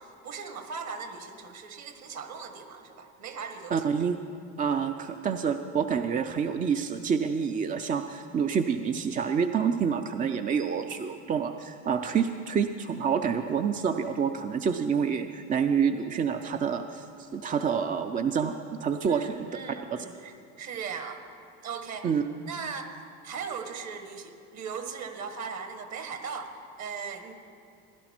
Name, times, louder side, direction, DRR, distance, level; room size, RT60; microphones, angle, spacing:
voice 1, 0.0-3.9 19.1-21.2 21.6-22.1 22.5-23.0 23.2-27.3, right 5 dB, 50° right, 7 dB, 1.5 m, -38 dB
voice 2, 3.7-4.2 4.6-17.1 17.3-18.5 18.8-19.5 19.9-20.0 22.0-22.2, right 6 dB, 25° right, 7 dB, 0.4 m, -27 dB
16.0 x 11.0 x 4.4 m, 2.6 s
supercardioid pair, 105°, 36 cm